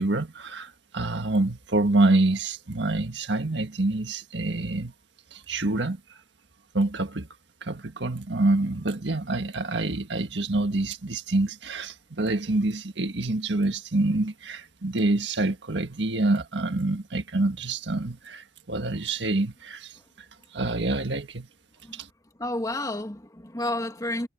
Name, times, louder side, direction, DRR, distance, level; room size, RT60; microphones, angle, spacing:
voice 1, 0.0-4.9 5.3-6.2 6.7-7.3 7.6-20.0 20.5-21.5 21.9-22.1, right 2 dB, 75° right, 1.7 m, -26 dB
voice 2, 22.4-24.3, left 1 dB, 20° left, 2.4 m, -30 dB
head